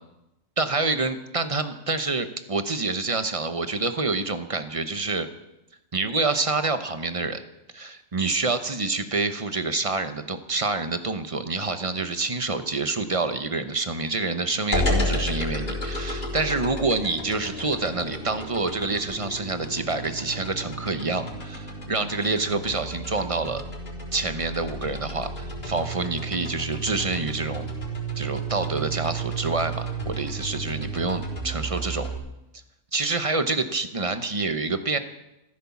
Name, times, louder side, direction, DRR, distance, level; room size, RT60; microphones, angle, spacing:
voice 1, 0.6-5.3 5.9-7.4 7.7-23.6 24.1-27.7 28.2-32.1 32.9-35.0, right 3 dB, 25° right, 10 dB, 0.9 m, -27 dB
sound 1, 14.7-32.2, right 1 dB, 35° left, 4.1 m, -32 dB
15.0 x 13.5 x 7.2 m, 0.92 s
omnidirectional pair, 1.4 m